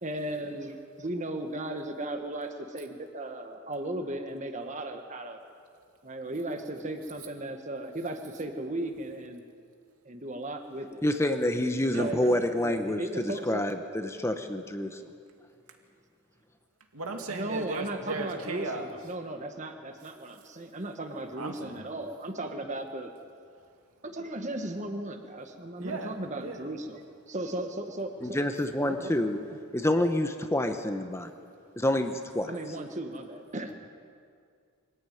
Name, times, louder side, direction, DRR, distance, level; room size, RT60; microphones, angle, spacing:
voice 1, 0.0-5.4 6.0-9.4 10.0-11.0 12.0-13.6 17.3-23.1 24.0-27.0 27.3-28.4 28.8-29.1 29.5-29.6 32.5-33.7, right 1 dB, 35° right, 5 dB, 1.5 m, -36 dB
voice 2, 11.0-15.0 28.2-29.4 29.7-31.3 31.8-32.5, left 1 dB, 10° left, 6 dB, 1.0 m, -28 dB
voice 3, 11.9-12.5 16.9-18.9 21.1-21.9 25.8-26.6, right 2 dB, 85° right, 3 dB, 2.4 m, -37 dB
23.0 x 14.5 x 9.3 m, 2.2 s
head